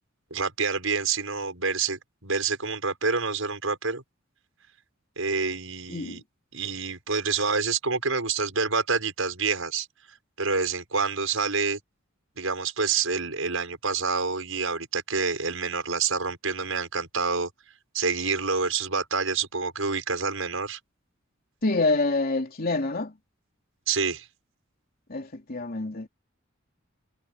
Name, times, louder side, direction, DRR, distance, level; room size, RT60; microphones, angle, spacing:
voice 1, 0.3-4.0 5.2-6.2 6.5-9.9 10.4-11.8 12.4-17.5 17.9-20.8 23.9-24.3, right 4 dB, 85° right, 6.4 m, -27 dB
voice 2, 5.9-6.2 21.6-23.1 25.1-26.1, left 3 dB, 50° left, 3.2 m, -26 dB
head